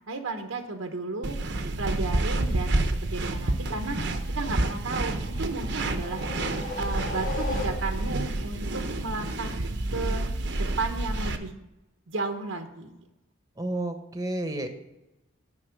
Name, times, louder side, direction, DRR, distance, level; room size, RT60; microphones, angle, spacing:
voice 1, 0.0-1.4 1.8-4.0 4.4-6.2 6.8-9.6 9.9-10.2 10.6-11.5 12.1-12.9, right 3 dB, 85° right, 5 dB, 1.0 m, -33 dB
sound 1, 1.2-11.4, right 2 dB, 55° right, 0.8 m, -29 dB
sound 2, 5.1-8.2, left 3 dB, 40° left, 1.5 m, -37 dB
voice 2, 13.6-14.7, right 1 dB, 15° right, 6 dB, 0.9 m, -31 dB
9.8 x 5.5 x 7.7 m, 0.95 s
head